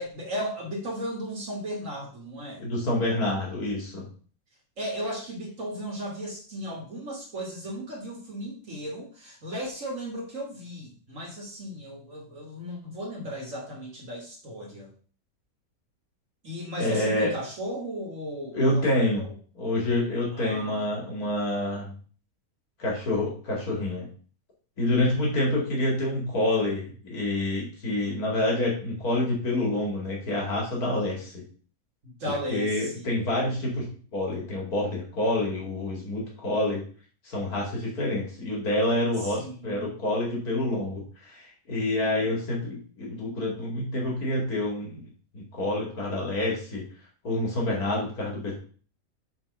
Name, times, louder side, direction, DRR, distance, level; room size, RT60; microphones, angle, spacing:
voice 1, 0.0-2.6 4.8-14.9 16.4-19.3 20.3-20.9 32.0-33.1 39.2-39.9, equal, 60° right, -2 dB, 2.0 m, -36 dB
voice 2, 2.6-4.1 16.8-17.3 18.5-19.2 19.6-21.9 22.8-24.1 24.8-31.4 32.5-36.8 37.2-45.0 45.3-46.8 47.2-48.6, left 1 dB, 85° left, -3 dB, 2.9 m, -27 dB
6.1 x 4.6 x 6.6 m, 0.42 s
omnidirectional pair, 1.5 m